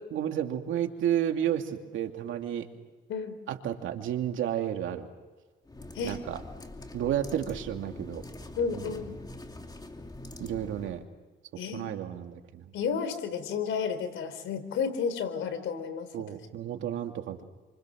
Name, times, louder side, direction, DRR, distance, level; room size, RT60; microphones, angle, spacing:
voice 1, 0.0-2.7 3.5-5.1 6.0-6.4 6.9-8.2 8.7-8.9 10.4-11.0 11.7-12.6 16.1-17.4, right 10 dB, 80° right, 4 dB, 2.6 m, -31 dB
sound 1, 5.6-11.0, left 1 dB, 20° left, 2.7 m, -44 dB
voice 2, 8.6-9.2 11.6-11.9 12.7-16.1, left 6 dB, 80° left, 10 dB, 3.9 m, -32 dB
28.5 x 26.0 x 6.4 m, 1.3 s
cardioid pair, 90°, 20 cm